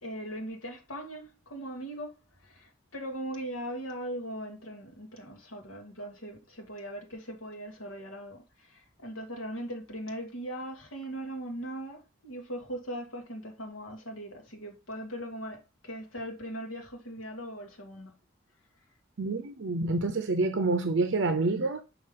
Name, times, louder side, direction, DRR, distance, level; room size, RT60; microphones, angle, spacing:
voice 1, 0.0-18.1, right 1 dB, 80° left, 2.1 m, -40 dB
voice 2, 19.2-21.8, right 3 dB, 60° right, 0.6 m, -27 dB
6.1 x 5.2 x 3.7 m
head